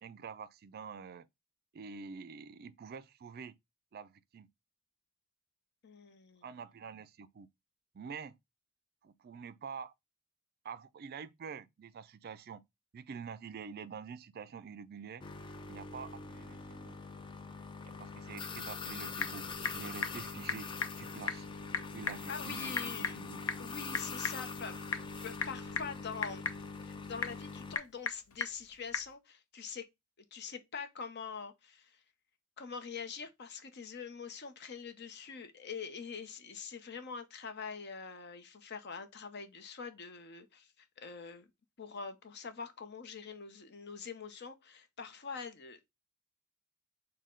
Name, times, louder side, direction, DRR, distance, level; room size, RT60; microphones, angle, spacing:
voice 1, 0.0-1.3 1.7-3.6 3.9-4.5 6.4-7.5 7.9-8.4 9.0-9.9 10.6-12.6 12.9-15.2 15.7-17.0 17.8-19.5 19.7-20.7 20.9-21.5 21.9-23.4, right 6 dB, 50° right, 0.4 m, -47 dB
voice 2, 5.8-6.5 22.3-23.2 23.6-26.4 26.7-29.8 30.3-32.0 32.6-41.5 41.8-45.9, left 5 dB, 55° left, 0.7 m, -44 dB
sound 1, 15.2-27.8, left 4 dB, 25° left, 0.4 m, -43 dB
Typing / Telephone, 18.6-29.1, left 6 dB, 85° left, 0.7 m, -40 dB
6.3 x 2.2 x 3.7 m
head